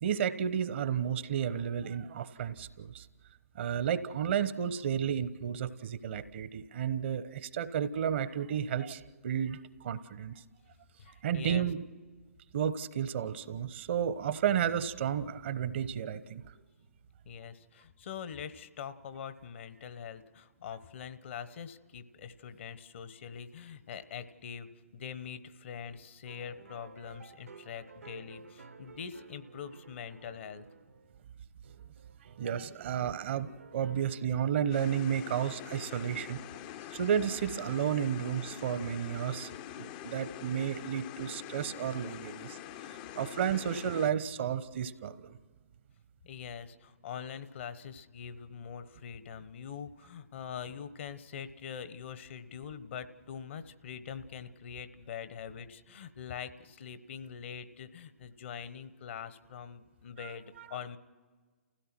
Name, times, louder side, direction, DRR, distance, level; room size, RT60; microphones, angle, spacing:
voice 1, 0.0-3.1 3.5-10.4 11.2-11.8 12.5-16.4 32.4-36.4 36.9-39.5 39.8-42.6 43.1-45.4 60.2-60.3 60.6-60.7, right 8 dB, 50° right, 14 dB, 1.0 m, -32 dB
voice 2, 11.0-11.7 17.2-30.6 46.2-61.0, left 7 dB, 55° left, 13 dB, 1.1 m, -43 dB
sound 1, 26.3-31.3 31.6-34.3 35.1-36.6, right 4 dB, 85° right, 1.5 m, -55 dB
sound 2, 34.7-44.1, left 12 dB, 35° left, 0.6 m, -45 dB
30.0 x 16.5 x 6.1 m, 1.5 s
figure-of-eight pair, 125°, 8 cm